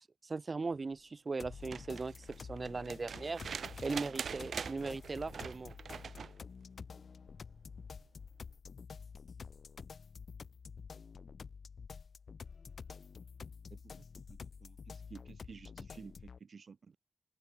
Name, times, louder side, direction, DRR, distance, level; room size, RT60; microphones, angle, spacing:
voice 1, 0.0-3.4 3.8-5.7, right 4 dB, 40° right, 1.1 m, -39 dB
sound 1, 1.4-16.4, left 5 dB, 65° left, 4.7 m, -49 dB
sound 2, 1.5-6.4 8.0-8.1, right 6 dB, 85° right, 5.4 m, -44 dB
voice 2, 13.7-17.0, right 5 dB, 60° right, 7.0 m, -54 dB
open air
wide cardioid pair, 145°, 0 cm